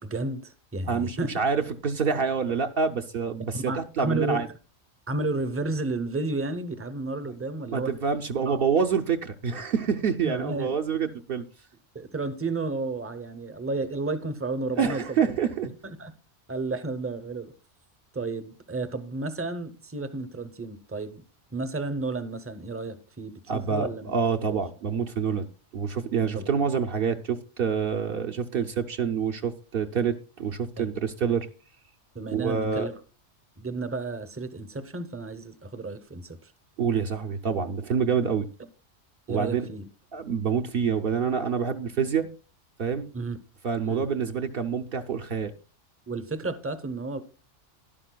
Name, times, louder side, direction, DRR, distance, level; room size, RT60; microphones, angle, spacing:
voice 1, 0.0-1.3 3.5-4.4 5.1-7.9 8.5-8.6 10.2-10.7 11.9-15.2 15.6-16.1 16.5-17.5 18.1-21.2 21.5-24.1 24.5-24.6 26.3-26.5 30.8-30.9 32.1-32.9 33.6-36.5 39.3-39.9 43.1-43.4 43.8-44.0 46.1-47.2, right 3 dB, 15° right, 0.5 m, -32 dB
voice 2, 0.9-4.5 7.7-11.4 14.8-15.7 23.5-25.5 25.7-31.5 32.3-32.9 36.8-38.5 39.3-39.7 40.1-42.3 42.8-43.1 43.6-45.5, right 6 dB, 60° right, 0.8 m, -27 dB
12.5 x 11.0 x 2.2 m
omnidirectional pair, 1.2 m